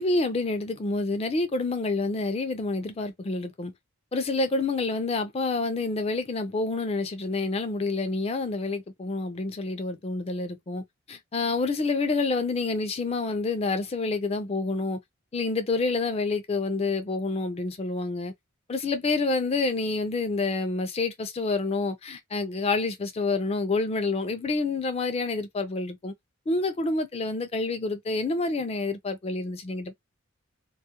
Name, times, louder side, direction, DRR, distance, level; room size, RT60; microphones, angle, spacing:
voice 1, 0.0-3.7 4.1-15.0 15.3-18.3 18.7-26.1 26.5-29.9, left 3 dB, 30° left, 0.4 m, -28 dB
2.3 x 2.1 x 2.8 m
head